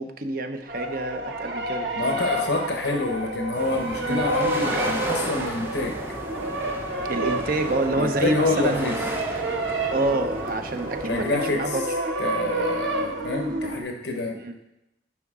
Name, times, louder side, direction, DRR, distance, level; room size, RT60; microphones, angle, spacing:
voice 1, 0.0-2.2 4.1-4.2 7.1-8.9 9.9-11.8 14.4-14.6, right 2 dB, 55° right, 6 dB, 0.7 m, -27 dB
sound 1, 0.7-13.8, right 2 dB, 85° right, 1.1 m, -29 dB
voice 2, 1.9-6.0 7.9-9.0 11.0-11.8 12.2-14.4, left 3 dB, 75° left, 3 dB, 0.9 m, -27 dB
sound 2, 3.5-11.3, right 1 dB, 15° right, 0.6 m, -35 dB
11.0 x 5.1 x 3.7 m, 0.87 s
head